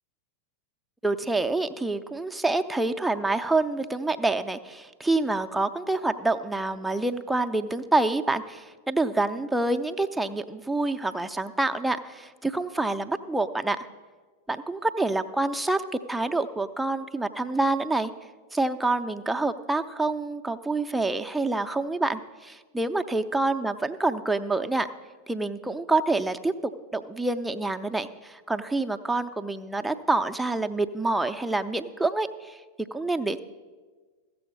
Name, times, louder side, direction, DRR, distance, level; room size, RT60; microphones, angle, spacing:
voice 1, 1.0-13.8 14.5-18.1 18.5-24.9 25.3-26.5 26.9-32.6 32.9-33.4, right 2 dB, 5° right, 6 dB, 0.5 m, -27 dB
15.0 x 7.0 x 5.4 m, 1.4 s
figure-of-eight pair, 90°, 0 cm